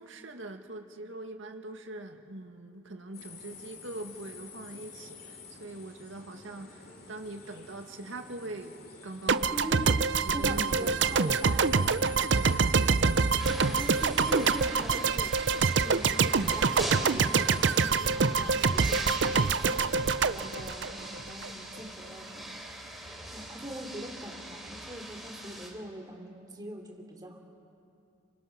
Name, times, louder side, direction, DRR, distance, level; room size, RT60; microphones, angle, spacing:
voice 1, 0.0-9.7 10.2-11.8 12.3-13.1, right 2 dB, 85° right, 5 dB, 1.9 m, -43 dB
sound 1, 3.1-17.8, left 5 dB, 50° left, 2.8 m, -49 dB
sound 2, 9.3-21.5, right 5 dB, 65° right, 0.6 m, -26 dB
voice 2, 9.5-11.9 13.5-15.4 15.8-22.6 23.3-27.4, right 1 dB, 20° right, 0 dB, 2.8 m, -42 dB
sound 3, 13.4-25.7, right 1 dB, ahead, 3.2 m, -41 dB
30.0 x 25.5 x 6.0 m, 2.6 s
head